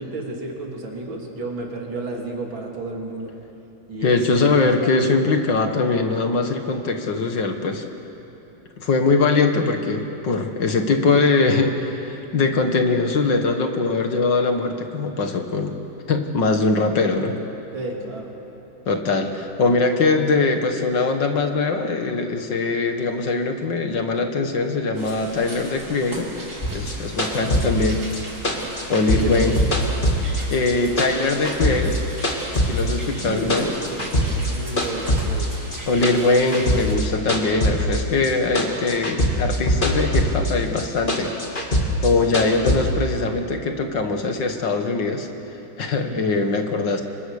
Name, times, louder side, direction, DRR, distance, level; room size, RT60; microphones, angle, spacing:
voice 1, 0.0-3.4 3.9-4.9 17.7-18.4 29.1-29.5 33.2-35.5 46.0-46.3, right 2 dB, 75° right, 0 dB, 3.8 m, -32 dB
voice 2, 4.0-7.8 8.8-15.8 16.1-17.4 18.9-26.3 26.7-28.0 28.9-29.6 30.5-32.0 32.6-33.7 35.9-41.3 42.0-45.3 45.8-47.0, left 3 dB, 60° left, 5 dB, 2.4 m, -21 dB
sound 1, 24.9-36.9, right 1 dB, 40° right, 3.8 m, -38 dB
sound 2, 26.6-30.7 31.0-32.9 33.2-34.5 34.8-38.3 38.6-40.5 40.8-42.8, equal, 25° left, 2.6 m, -22 dB
29.5 x 24.0 x 6.7 m, 2.9 s
omnidirectional pair, 2.2 m